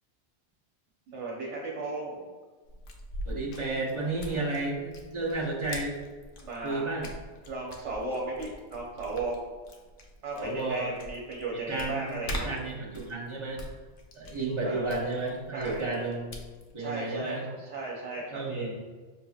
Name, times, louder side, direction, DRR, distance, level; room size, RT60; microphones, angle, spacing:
voice 1, 1.1-2.3 4.3-4.5 6.4-7.0 7.5-9.4 10.2-12.5 14.6-14.9 15.5-16.2 16.8-18.7, right 2 dB, 80° right, -3 dB, 1.1 m, -36 dB
sound 1, 2.6-16.7, equal, 55° left, 0.7 m, -43 dB
voice 2, 3.2-6.0 6.6-7.1 10.4-10.9 11.7-13.6 14.2-16.3 16.7-17.5 18.3-18.7, right 2 dB, 30° right, -4 dB, 0.7 m, -32 dB
5.9 x 2.8 x 2.3 m, 1.4 s
omnidirectional pair, 1.2 m